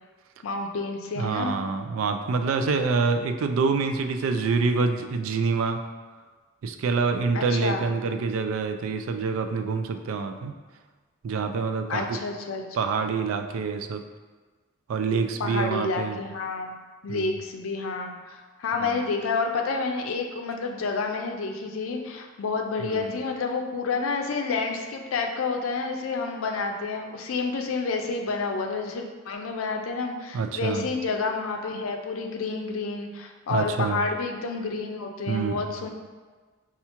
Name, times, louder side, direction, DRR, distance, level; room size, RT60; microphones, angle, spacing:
voice 1, 0.4-1.6 7.3-7.8 11.9-13.0 15.4-16.7 17.0-35.9, left 4 dB, 85° left, 3 dB, 0.4 m, -29 dB
voice 2, 1.2-5.8 6.6-10.5 11.2-12.2 12.7-14.0 14.9-16.2 17.1-17.3 18.8-19.0 22.8-23.2 30.3-30.9 33.5-34.0 35.3-35.6, right 4 dB, 80° right, 7 dB, 0.3 m, -26 dB
5.5 x 2.4 x 2.8 m, 1.4 s
head